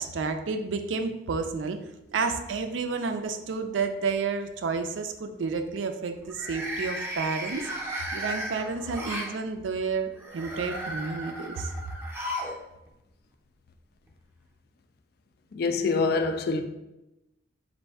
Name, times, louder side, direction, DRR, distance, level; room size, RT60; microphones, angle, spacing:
voice 1, 0.0-1.8 2.1-7.7 8.1-11.7, right 4 dB, 85° right, 0.4 m, -30 dB
sound 1, 2.7-3.4 3.7-4.1 6.2-9.3 10.2-12.6 12.9-13.0 14.1-14.2, right 1 dB, 15° right, 0.6 m, -35 dB
voice 2, 15.5-16.6, left 4 dB, 55° left, 0.4 m, -25 dB
4.2 x 2.5 x 3.4 m
head